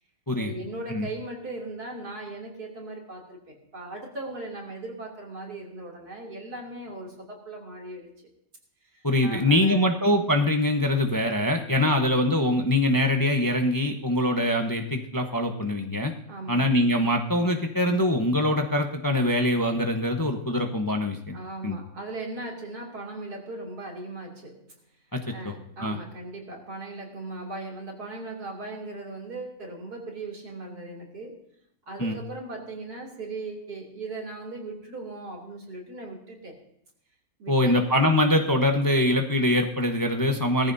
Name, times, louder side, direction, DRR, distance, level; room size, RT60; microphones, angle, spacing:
voice 1, 0.4-8.3 8.8-9.9 16.3-16.6 21.3-24.7 25.3-31.4 31.9-36.6 37.4-37.8, right 2 dB, 80° right, -1 dB, 3.5 m, -38 dB
voice 2, 9.0-16.1 16.5-21.4 21.6-21.8 25.1-25.5 25.8-26.0 32.0-32.2 37.5-40.7, left 1 dB, 15° left, 4 dB, 0.8 m, -23 dB
19.0 x 14.5 x 2.7 m, 0.74 s
omnidirectional pair, 1.6 m